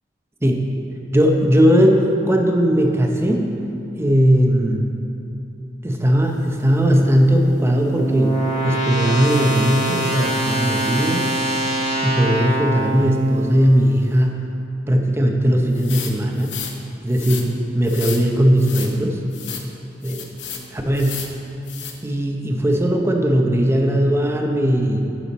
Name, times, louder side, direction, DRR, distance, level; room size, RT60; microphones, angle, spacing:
voice 1, 1.1-3.5 4.0-4.8 5.8-8.4 8.6-11.3 12.0-14.5 14.9-16.6 17.0-19.2 20.0-20.2 20.7-21.2 22.0-25.0, equal, 15° right, 2 dB, 0.7 m, -18 dB
sound 1, 6.8-14.0, right 1 dB, 45° left, 1.8 m, -24 dB
sound 2, 15.7-16.7 17.1-17.4 17.9-18.2 18.6-18.9 19.3-19.7 20.0-20.6 20.9-21.3 21.7-21.9, left 8 dB, 85° left, 0.8 m, -32 dB
11.0 x 5.8 x 4.1 m, 2.9 s
head